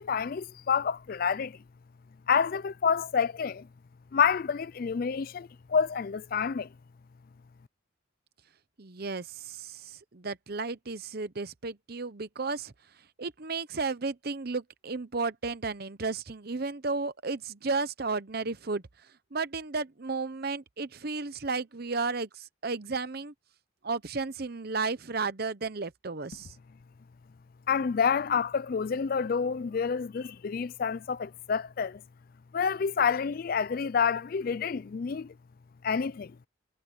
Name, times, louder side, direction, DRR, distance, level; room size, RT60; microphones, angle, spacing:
voice 1, 0.0-1.6 2.3-3.7 4.1-6.7 27.7-32.0 32.5-35.3 35.8-36.4, left 6 dB, 45° left, 0.4 m, -28 dB
voice 2, 8.8-12.7 13.2-18.8 19.3-23.3 23.8-26.5, right 4 dB, 50° right, 0.8 m, -33 dB
head